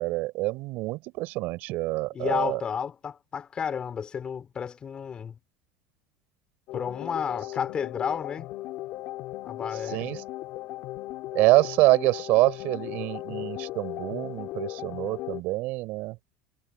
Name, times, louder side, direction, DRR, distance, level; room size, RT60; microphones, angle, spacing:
voice 1, 0.0-2.6 9.9-10.2 11.3-16.2, right 20 dB, 60° right, 5.3 m, -26 dB
voice 2, 2.1-5.4 6.7-8.5 9.4-10.1, left 7 dB, 30° left, 4.0 m, -32 dB
sound 1, 6.7-15.4, left 17 dB, 55° left, 2.5 m, -37 dB
supercardioid pair, 125°, 3 cm